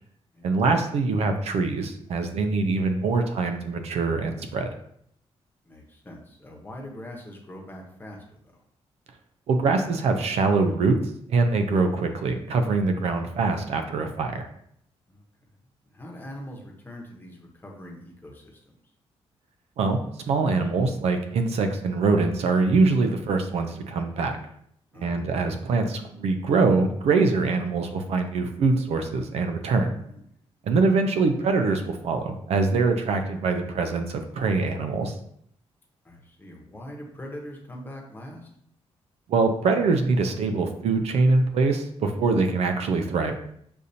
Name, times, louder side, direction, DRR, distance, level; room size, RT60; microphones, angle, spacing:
voice 1, 0.4-4.7 9.5-11.0 11.3-14.5 19.8-20.0 20.3-24.4 25.0-29.9 30.7-35.1 39.3-43.3, right 3 dB, 75° right, 6 dB, 0.5 m, -23 dB
voice 2, 5.6-8.5 15.1-15.3 15.8-18.8 24.9-25.4 30.1-30.3 30.6-30.7 36.0-38.5, left 1 dB, 20° left, 0 dB, 1.0 m, -42 dB
6.6 x 2.6 x 2.7 m, 0.69 s
cardioid pair, 110°, 11 cm